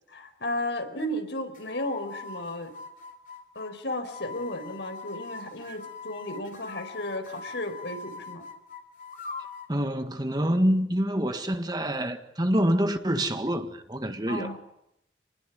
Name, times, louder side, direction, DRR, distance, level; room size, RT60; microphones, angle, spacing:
voice 1, 0.1-2.8 3.5-8.4 14.3-14.6, left 1 dB, 75° left, 4.8 m, -34 dB
sound 1, 1.5-9.7, left 4 dB, 45° left, 2.8 m, -42 dB
voice 2, 9.7-14.6, equal, 20° right, 1.7 m, -26 dB
28.0 x 20.5 x 9.6 m
head